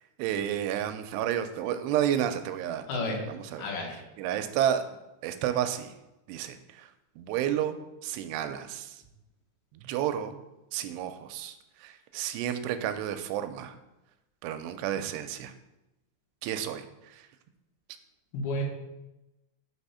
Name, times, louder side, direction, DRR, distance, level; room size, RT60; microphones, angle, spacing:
voice 1, 0.2-3.7 4.2-4.8 5.2-5.9 6.3-6.6 7.2-8.9 9.8-10.4 10.7-11.6 11.8-13.7 14.4-15.5 16.4-16.8, right 10 dB, 90° right, 8 dB, 2.7 m, -31 dB
voice 2, 2.9-3.3 3.6-4.0 18.3-18.6, left 2 dB, 75° left, 0 dB, 2.8 m, -31 dB
6.2 x 3.5 x 5.5 m, 0.97 s
omnidirectional pair, 4.7 m